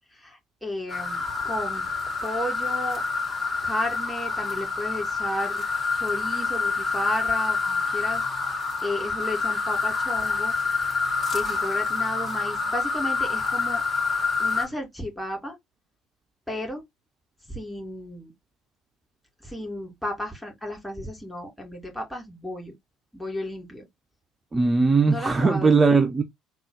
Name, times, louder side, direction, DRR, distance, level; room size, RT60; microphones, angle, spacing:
voice 1, 0.1-1.9 2.2-3.0 3.6-5.6 5.9-10.6 11.3-13.8 14.4-15.6 16.5-16.8 17.5-18.3 19.4-22.7 23.1-23.9 25.1-25.8, left 1 dB, 5° left, 2.3 m, -33 dB
sound 1, 0.9-14.7, left 4 dB, 35° left, 2.3 m, -27 dB
voice 2, 24.5-26.2, right 4 dB, 25° right, 0.5 m, -19 dB
3.7 x 2.4 x 3.8 m
figure-of-eight pair, 60°, 0 cm